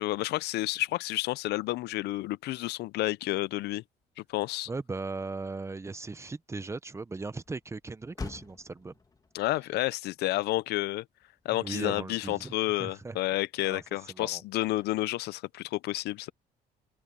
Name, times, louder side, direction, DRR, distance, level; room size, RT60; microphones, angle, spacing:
voice 1, 0.0-3.8 4.3-4.7 9.3-11.0 11.4-16.3, left 17 dB, 75° left, 0.5 m, -30 dB
Motor vehicle (road), 4.0-12.7, left 4 dB, 20° left, 1.8 m, -50 dB
voice 2, 4.7-8.9 11.5-12.5 12.8-13.2 13.6-13.8 14.1-14.4, right 3 dB, 15° right, 0.9 m, -38 dB
open air
cardioid pair, 110°, 17 cm